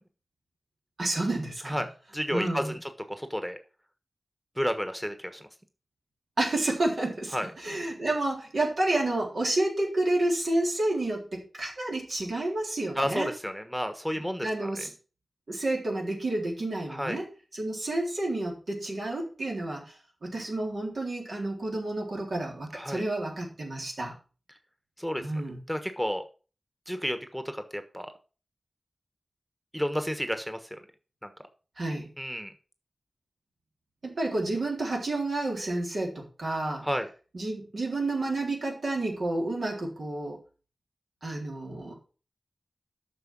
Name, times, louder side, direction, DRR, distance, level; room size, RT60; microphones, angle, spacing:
voice 1, 1.0-1.8 2.3-2.8 6.4-13.3 14.4-14.9 15.5-17.3 17.5-24.1 25.2-25.6 31.8-32.1 34.0-36.9 37.3-40.4 41.2-42.0, right 2 dB, 80° right, -1 dB, 3.7 m, -30 dB
voice 2, 2.1-2.6 3.1-3.6 4.6-5.4 7.3-7.5 13.0-14.8 16.9-17.2 22.7-23.0 25.0-25.2 25.7-26.2 26.9-28.1 29.7-30.6 31.2-31.3 32.2-32.5 36.8-37.1, equal, 5° right, 8 dB, 1.2 m, -31 dB
9.3 x 6.3 x 6.0 m, 0.36 s
wide cardioid pair, 75°, 0 cm